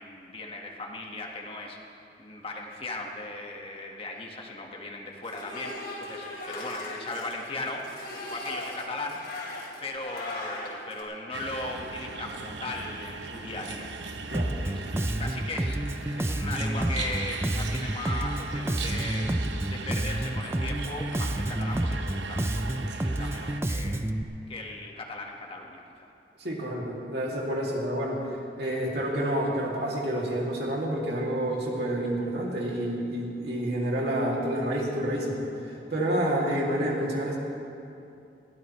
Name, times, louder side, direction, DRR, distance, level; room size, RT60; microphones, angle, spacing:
voice 1, 0.0-7.9 8.1-9.2 9.8-13.9 14.6-19.3 19.6-24.0 24.5-26.1, left 2 dB, 35° left, 0 dB, 1.6 m, -38 dB
sound 1, 5.2-11.0, left 2 dB, 55° left, 3.9 m, -38 dB
sound 2, 11.3-23.6, right 4 dB, 85° right, 0.9 m, -38 dB
Bass guitar, 14.3-24.2, right 1 dB, 15° right, 0.5 m, -29 dB
voice 2, 26.4-37.4, right 1 dB, 65° right, -2 dB, 2.6 m, -29 dB
21.5 x 16.5 x 3.2 m, 2.7 s
head